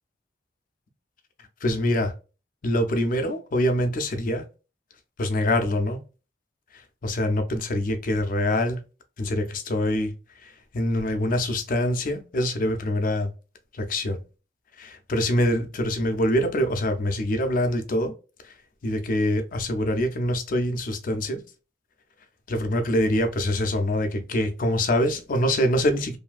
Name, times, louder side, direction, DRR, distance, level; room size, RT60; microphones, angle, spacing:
voice 1, 1.6-2.1 2.6-4.5 5.2-6.0 6.7-8.8 9.2-10.1 10.4-13.3 13.7-14.2 14.8-18.1 18.4-18.6 18.8-21.4 22.5-26.2, left 1 dB, 50° left, 0.5 m, -25 dB
2.6 x 2.5 x 2.3 m
head